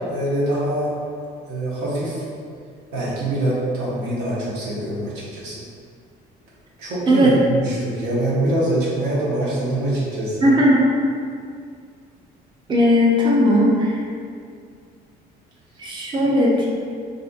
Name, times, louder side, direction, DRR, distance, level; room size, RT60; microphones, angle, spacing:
voice 1, 0.1-0.9 1.5-2.2 2.9-5.6 6.8-10.5 16.2-16.3, right 1 dB, 85° right, -7 dB, 0.9 m, -24 dB
voice 2, 10.4-10.8 12.7-13.9 15.8-16.7, equal, 25° right, -4 dB, 0.5 m, -16 dB
2.6 x 2.5 x 2.4 m, 2.2 s
cardioid pair, 110°, 17 cm